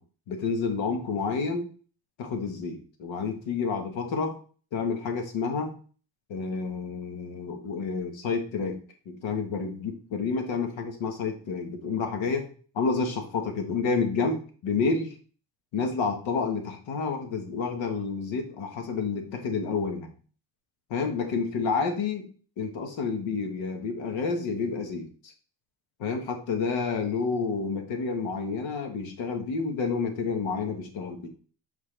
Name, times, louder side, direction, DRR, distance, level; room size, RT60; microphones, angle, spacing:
voice 1, 0.3-1.7 2.2-4.3 4.7-5.7 6.3-8.8 9.0-12.5 12.7-15.1 15.7-20.1 20.9-22.3 22.6-25.3 26.0-31.3, left 4 dB, 85° left, 5 dB, 1.5 m, -29 dB
5.8 x 5.6 x 3.3 m, 0.40 s
cardioid pair, 140°, 45 cm